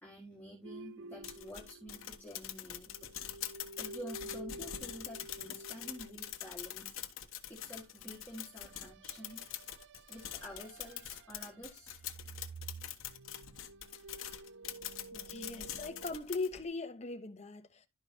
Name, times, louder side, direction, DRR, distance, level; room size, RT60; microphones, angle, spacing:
voice 1, 0.0-3.1 3.8-6.9 7.5-9.4 10.1-12.0, equal, 10° left, 1.8 m, -49 dB
sound 1, 0.6-2.6 2.9-6.7 8.3-11.6 11.8-16.2, right 2 dB, 60° right, 0.4 m, -51 dB
sound 2, 1.2-16.6, left 11 dB, 80° left, 1.1 m, -44 dB
voice 2, 15.1-17.9, left 3 dB, 35° left, 0.8 m, -40 dB
12.0 x 5.2 x 2.8 m
head